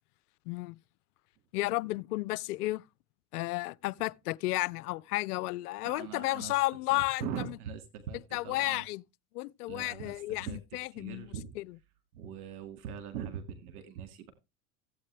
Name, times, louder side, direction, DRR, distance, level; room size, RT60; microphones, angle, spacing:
voice 1, 0.5-0.8 1.5-2.8 3.3-7.6 8.3-9.0 9.3-11.8, left 19 dB, 80° left, 0.6 m, -33 dB
voice 2, 5.8-6.5 6.9-8.9 9.7-10.6 10.9-11.5 12.1-14.3, right 8 dB, 70° right, 2.1 m, -41 dB
14.5 x 8.5 x 3.3 m
hypercardioid pair, 95°, 45 cm